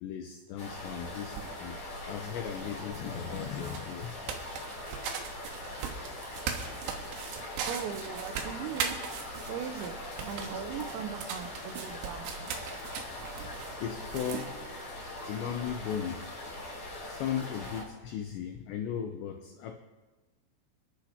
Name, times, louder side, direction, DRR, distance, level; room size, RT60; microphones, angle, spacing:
voice 1, 0.0-1.8 2.0-4.2 13.8-14.6 15.3-16.3 17.0-19.8, left 8 dB, 80° left, 5 dB, 2.6 m, -37 dB
sound 1, 0.6-17.8, left 1 dB, 30° left, 4.4 m, -42 dB
sound 2, 0.7-14.5, right 7 dB, 70° right, 2.9 m, -40 dB
voice 2, 7.7-9.0 9.5-10.0 10.2-12.5, right 8 dB, 90° right, 3 dB, 3.5 m, -39 dB
28.0 x 11.5 x 2.9 m, 1.2 s
omnidirectional pair, 6.0 m